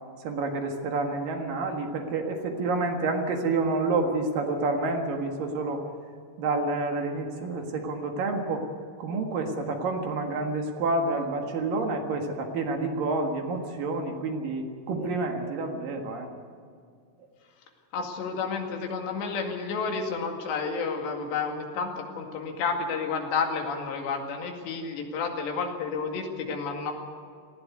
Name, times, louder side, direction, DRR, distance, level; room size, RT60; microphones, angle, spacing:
voice 1, 0.2-5.8 6.4-8.7 9.0-16.3, right 3 dB, 60° right, 3 dB, 3.0 m, -29 dB
voice 2, 17.9-26.9, left 5 dB, 85° left, 2 dB, 4.4 m, -31 dB
18.5 x 16.0 x 9.4 m, 2.2 s
omnidirectional pair, 4.9 m